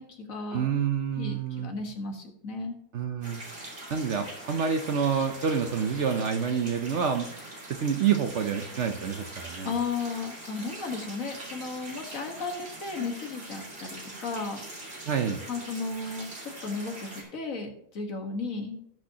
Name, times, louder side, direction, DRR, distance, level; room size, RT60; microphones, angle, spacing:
voice 1, 0.0-0.7 1.2-2.8 9.6-14.6 15.5-18.8, left 4 dB, 60° left, 4 dB, 1.9 m, -34 dB
voice 2, 0.5-1.7 2.9-3.4 3.9-7.3 7.7-9.7 15.1-15.4, right 7 dB, 55° right, 7 dB, 1.0 m, -28 dB
sound 1, 3.2-17.2, right 1 dB, 40° right, 2.8 m, -43 dB
18.5 x 6.3 x 2.9 m, 0.71 s
omnidirectional pair, 1.6 m